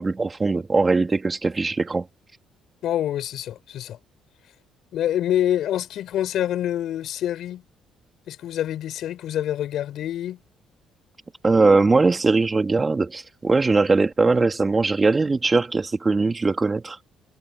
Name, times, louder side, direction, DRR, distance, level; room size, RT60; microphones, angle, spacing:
voice 1, 0.0-2.1 11.4-17.0, right 3 dB, 25° right, 3.2 m, -20 dB
voice 2, 2.8-4.0 4.9-7.6 8.3-10.4, left 11 dB, 70° left, 5.4 m, -26 dB
cardioid pair, 95°, 0 cm